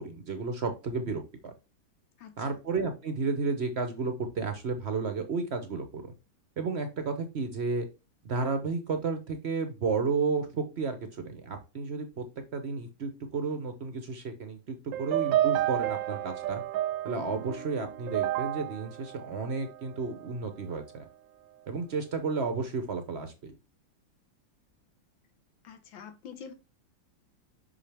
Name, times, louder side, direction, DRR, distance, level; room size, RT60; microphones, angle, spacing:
voice 1, 0.0-1.5 2.4-6.1 6.6-7.9 8.2-12.2 12.5-16.6 17.0-21.0 21.7-23.5, right 4 dB, 55° right, 8 dB, 0.7 m, -32 dB
voice 2, 2.2-2.6 25.6-26.5, left 7 dB, 80° left, 8 dB, 1.9 m, -46 dB
sound 1, 14.9-20.2, right 13 dB, 80° right, 1.3 m, -31 dB
6.2 x 5.7 x 3.4 m, 0.28 s
omnidirectional pair, 2.1 m